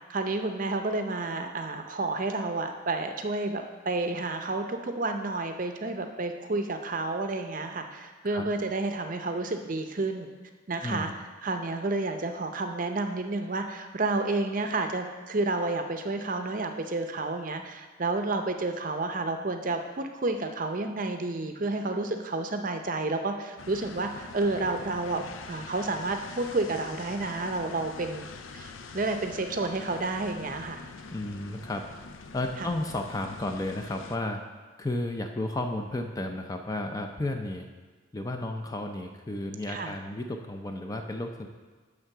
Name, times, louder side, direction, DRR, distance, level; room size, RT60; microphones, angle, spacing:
voice 1, 0.1-10.3 10.7-11.1 11.4-28.3 28.5-30.8 32.6-32.7 39.7-39.9, right 2 dB, 40° right, 6 dB, 0.6 m, -30 dB
voice 2, 10.8-11.1 31.1-31.8 32.3-34.4 34.8-37.7 38.1-41.5, left 1 dB, 15° left, 4 dB, 0.5 m, -33 dB
sound 1, 23.6-34.2, left 4 dB, 80° left, 0.5 m, -44 dB
10.5 x 3.6 x 6.7 m, 1.4 s
head